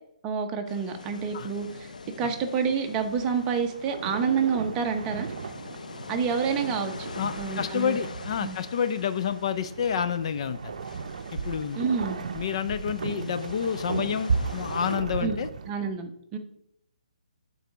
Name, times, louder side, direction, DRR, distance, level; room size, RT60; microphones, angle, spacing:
voice 1, 0.2-1.9 2.2-5.3 6.1-7.1 7.4-8.0 8.4-8.6 11.8-12.2 15.2-15.4 15.7-16.4, right 6 dB, 20° right, 5 dB, 0.8 m, -28 dB
sound 1, 0.7-15.0, left 4 dB, 85° left, 0.8 m, -44 dB
sound 2, 2.9-15.7, right 5 dB, 65° right, 0.6 m, -36 dB
voice 2, 7.2-10.7 11.3-11.8 12.3-15.5, left 8 dB, 50° left, 11 dB, 0.5 m, -29 dB
9.0 x 4.1 x 4.7 m, 0.76 s
hypercardioid pair, 155°, 4 cm